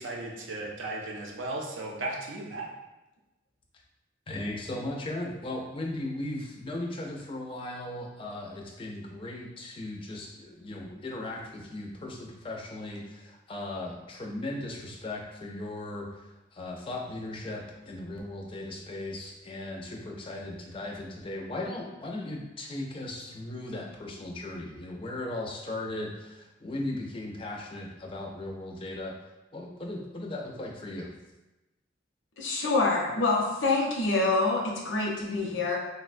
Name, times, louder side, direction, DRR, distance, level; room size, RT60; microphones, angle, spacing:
voice 1, 0.0-2.7, right 2 dB, 90° right, -1 dB, 0.6 m, -36 dB
voice 2, 4.3-29.1 29.5-31.1, left 1 dB, 30° left, 0 dB, 0.4 m, -37 dB
voice 3, 32.4-35.8, left 3 dB, 80° left, -2 dB, 0.6 m, -26 dB
3.8 x 2.1 x 2.5 m, 1.0 s
head